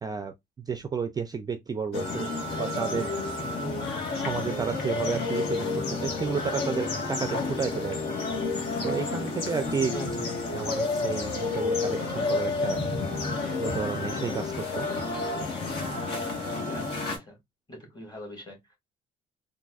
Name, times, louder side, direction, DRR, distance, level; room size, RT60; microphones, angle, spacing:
voice 1, 0.0-2.3 2.6-3.1 4.1-5.7 6.0-8.0 8.8-9.9 10.5-12.8 13.6-14.9, right 6 dB, 25° right, 0.4 m, -32 dB
sound 1, 1.9-17.2, left 3 dB, 75° left, 1.5 m, -30 dB
voice 2, 9.9-10.3 16.7-17.4 17.7-18.6, equal, 25° left, 1.9 m, -40 dB
3.9 x 2.5 x 2.3 m
cardioid pair, 110°, 17 cm